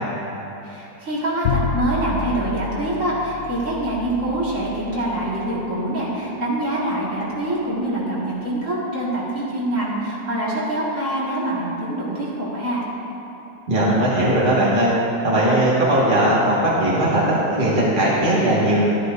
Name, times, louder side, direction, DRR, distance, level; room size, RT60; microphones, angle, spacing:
voice 1, 0.6-12.8, right 1 dB, 50° right, -7 dB, 2.3 m, -25 dB
Bowed string instrument, 1.4-7.6, left 5 dB, 75° left, 0.6 m, -30 dB
voice 2, 13.7-14.9 15.2-18.8, right 1 dB, 30° right, -8 dB, 1.9 m, -18 dB
12.5 x 12.5 x 2.6 m, 3.0 s
omnidirectional pair, 1.8 m